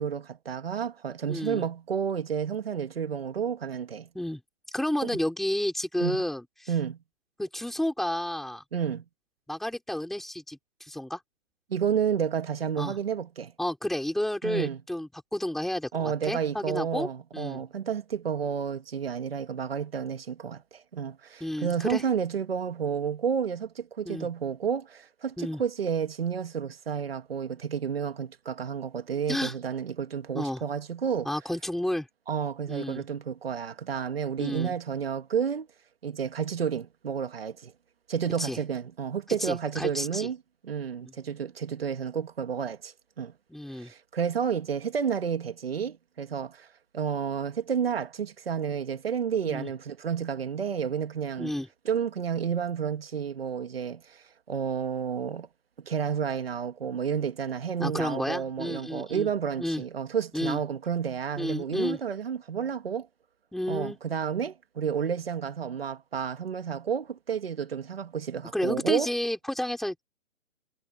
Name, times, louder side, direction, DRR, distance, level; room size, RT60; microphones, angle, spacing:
voice 1, 0.0-4.1 5.0-5.1 6.0-6.2 6.7-7.0 8.7-9.0 11.7-13.5 14.4-14.8 15.9-31.3 32.3-35.7 36.0-37.7 38.1-40.4 40.6-43.3 43.7-46.7 46.9-51.5 51.9-55.5 55.8-63.1 63.7-69.1, right 7 dB, 45° right, 2.3 m, -31 dB
voice 2, 1.3-1.6 4.1-4.4 4.7-6.4 7.4-8.6 9.5-11.2 12.8-13.0 13.6-17.6 21.4-22.0 24.1-24.3 25.4-25.6 29.3-29.5 30.3-30.6 31.3-32.1 32.7-33.0 34.4-34.7 38.4-38.6 39.4-40.3 41.0-41.1 43.5-43.9 49.5-49.7 51.4-51.7 57.8-59.3 59.6-59.8 60.3-60.6 61.4-62.0 63.5-64.0 68.5-70.0, left 1 dB, ahead, 3.5 m, -31 dB
hypercardioid pair, 175°, 41 cm